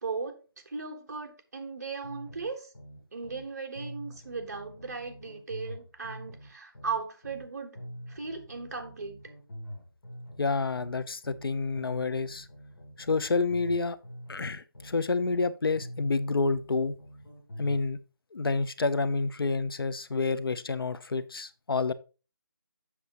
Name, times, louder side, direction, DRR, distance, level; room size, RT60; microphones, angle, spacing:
voice 1, 0.0-2.7 3.1-7.8 8.1-9.2, right 5 dB, 45° right, 1.3 m, -37 dB
sound 1, 2.0-3.5 3.8-7.5 7.8-11.5 11.8-15.5 15.8-17.9, equal, 60° left, 4.4 m, -45 dB
voice 2, 10.4-12.5 13.0-14.0 14.3-17.0 17.6-18.0 18.3-21.9, left 3 dB, 80° left, 0.7 m, -29 dB
7.4 x 6.9 x 2.9 m
hypercardioid pair, 175°, 12 cm